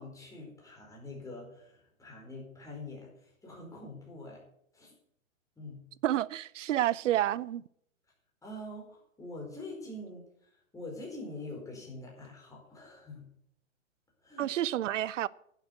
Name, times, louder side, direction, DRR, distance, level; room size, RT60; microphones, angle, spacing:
voice 1, 0.0-4.4 4.7-4.9 5.6-5.8 8.4-13.3 14.2-14.5, left 2 dB, 10° left, 4.5 m, -45 dB
voice 2, 6.0-7.6 14.4-15.3, right 12 dB, 65° right, 0.6 m, -29 dB
11.5 x 7.7 x 7.9 m
hypercardioid pair, 135°, 40 cm